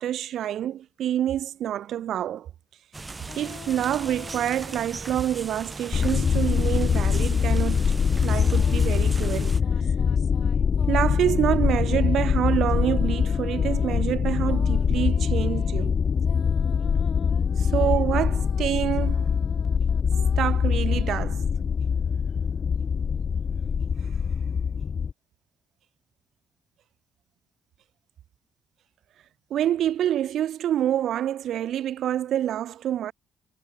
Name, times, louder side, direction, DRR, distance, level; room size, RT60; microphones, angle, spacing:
voice 1, 0.0-2.5 3.4-7.8 8.2-9.6 10.9-16.0 17.6-19.4 20.4-21.5 29.5-33.1, right 11 dB, 70° right, 1.0 m, -27 dB
sound 1, 2.9-9.6, right 3 dB, 25° right, 3.4 m, -38 dB
sound 2, 3.3-5.3 5.6-21.3, left 9 dB, 65° left, 3.5 m, -47 dB
sound 3, 5.9-25.1, left 6 dB, 45° left, 0.6 m, -23 dB
cardioid pair, 90°, 0 cm